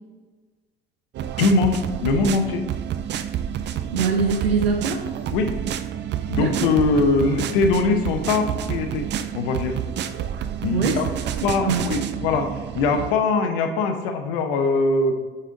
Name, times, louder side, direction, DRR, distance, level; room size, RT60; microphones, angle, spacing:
sound 1, 1.1-13.1, right 10 dB, 35° right, 0.5 m, -29 dB
voice 1, 1.4-2.6 5.3-5.5 6.3-9.8 10.6-11.1 11.4-15.1, left 3 dB, 65° left, 6 dB, 0.9 m, -22 dB
voice 2, 3.9-5.1 6.4-6.7 10.7-11.0 11.4-11.8, right 5 dB, 85° right, 1 dB, 0.6 m, -23 dB
8.2 x 4.4 x 3.8 m, 1.3 s
figure-of-eight pair, 60°, 30 cm